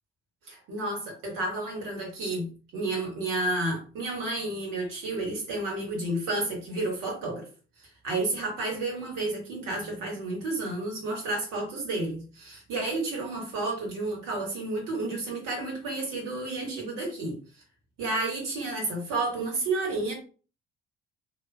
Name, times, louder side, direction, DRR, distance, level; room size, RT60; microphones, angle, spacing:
voice 1, 0.5-2.5 2.7-7.4 8.0-17.4 18.0-20.1, right 2 dB, 65° right, 0 dB, 1.6 m, -31 dB
3.9 x 2.8 x 2.3 m, 0.37 s
figure-of-eight pair, 45°, 34 cm